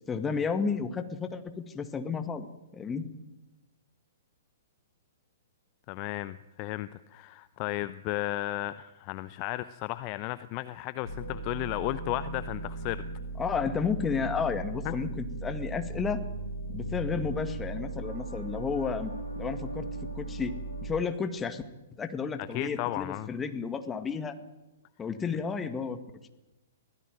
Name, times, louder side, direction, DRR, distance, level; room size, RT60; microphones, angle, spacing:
voice 1, 0.1-2.5 2.7-3.0 13.4-16.2 16.7-19.9 20.1-20.5 20.8-21.6 22.0-24.3 25.0-26.0, left 5 dB, 15° left, 8 dB, 1.8 m, -32 dB
voice 2, 5.9-13.0 14.8-14.9 22.4-23.3, left 17 dB, 35° left, 15 dB, 0.7 m, -34 dB
sound 1, 11.0-21.0, right 2 dB, 85° left, 3.8 m, -37 dB
23.5 x 16.0 x 9.2 m, 1.0 s
figure-of-eight pair, 110°, 0 cm